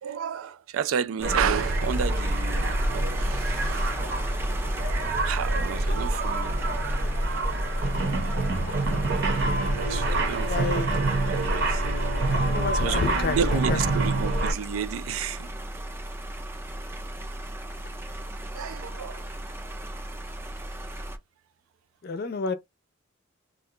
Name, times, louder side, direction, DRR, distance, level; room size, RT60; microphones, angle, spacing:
voice 1, 0.0-3.9 5.2-6.6 9.8-11.8 12.2-15.5 18.5-19.3, right 8 dB, 85° right, 0.3 m, -32 dB
sound 1, 1.2-21.2, right 1 dB, 10° right, 0.4 m, -35 dB
sound 2, 1.2-14.5, right 2 dB, 60° right, 0.7 m, -26 dB
Wind instrument woodwind instrument, 8.8-14.0, left 2 dB, 10° left, 0.8 m, -46 dB
voice 2, 10.4-10.9 12.3-13.4 13.7-13.8 22.0-22.5, left 4 dB, 50° left, 0.5 m, -29 dB
2.5 x 2.2 x 3.6 m
head